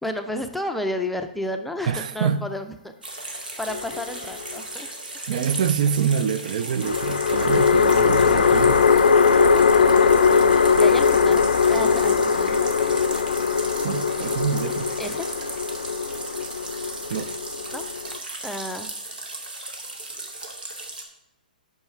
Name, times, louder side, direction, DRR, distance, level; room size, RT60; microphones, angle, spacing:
voice 1, 0.0-2.9 3.2-4.9 10.8-13.1 15.0-15.6 17.7-17.8 18.4-18.9, left 1 dB, ahead, 5 dB, 0.5 m, -32 dB
voice 2, 1.9-2.5 5.3-8.8 13.8-14.9 17.1-17.3, right 7 dB, 55° right, 14 dB, 0.4 m, -25 dB
sound 1, 3.0-21.0, right 2 dB, 80° right, 1.4 m, -36 dB
sound 2, 3.7-4.6 6.8-18.2, left 5 dB, 80° left, 0.5 m, -20 dB
5.5 x 5.4 x 5.7 m, 0.81 s
figure-of-eight pair, 125°, 5 cm